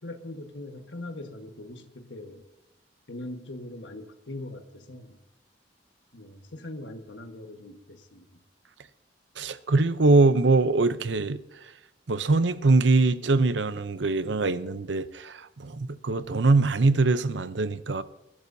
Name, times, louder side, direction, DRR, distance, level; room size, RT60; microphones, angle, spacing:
voice 1, 0.0-2.4 3.1-5.2 6.1-8.2, left 1 dB, 75° left, 1.5 m, -41 dB
voice 2, 9.4-11.4 12.1-18.0, right 3 dB, 75° right, 0.7 m, -23 dB
21.5 x 12.0 x 2.8 m
head